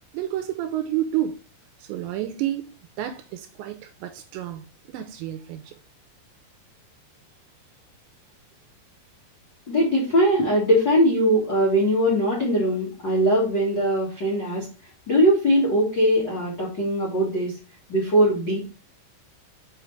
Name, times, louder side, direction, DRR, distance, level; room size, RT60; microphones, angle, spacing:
voice 1, 0.1-1.4 1.8-5.7, right 12 dB, 80° right, 2.7 m, -30 dB
voice 2, 9.7-14.7 15.1-17.5 17.9-18.6, equal, 70° left, 1.0 m, -21 dB
6.2 x 5.6 x 3.2 m
omnidirectional pair, 5.5 m